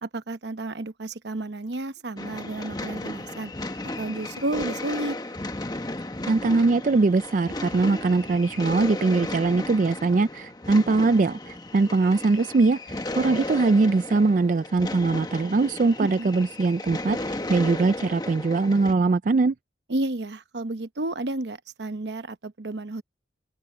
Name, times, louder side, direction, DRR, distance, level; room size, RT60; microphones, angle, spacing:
voice 1, 0.0-3.5 4.0-5.2 16.0-16.3 19.9-23.0, right 2 dB, 70° right, 0.9 m, -31 dB
sound 1, 2.2-18.9, left 2 dB, 20° left, 1.1 m, -35 dB
voice 2, 6.3-19.5, right 3 dB, 45° right, 0.4 m, -22 dB
open air
head